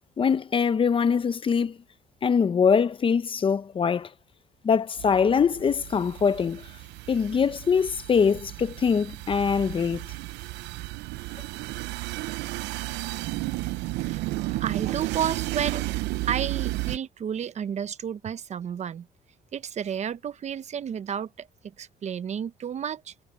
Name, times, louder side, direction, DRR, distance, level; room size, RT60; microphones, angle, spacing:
voice 1, 0.2-1.8 2.2-4.1 4.6-6.7 7.1-10.1, left 6 dB, 30° left, 0.7 m, -23 dB
sound 1, 5.0-17.0, right 19 dB, 85° right, 0.6 m, -33 dB
voice 2, 14.0-19.1 19.5-21.5 21.8-23.1, right 8 dB, 40° right, 0.9 m, -32 dB
cardioid pair, 110°, 17 cm